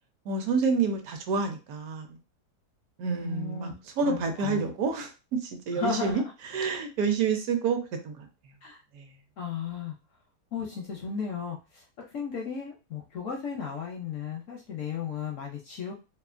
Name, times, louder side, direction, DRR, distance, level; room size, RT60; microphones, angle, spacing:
voice 1, 0.3-2.2 3.0-3.7 4.0-6.2 6.5-8.3 8.9-9.1, right 5 dB, 70° right, 5 dB, 1.0 m, -28 dB
voice 2, 3.2-3.7 4.0-4.7 5.7-6.2 8.6-8.8 9.4-9.9 10.5-11.8 12.1-15.9, left 6 dB, 70° left, 1 dB, 0.7 m, -35 dB
2.8 x 2.4 x 2.4 m, 0.30 s
omnidirectional pair, 1.8 m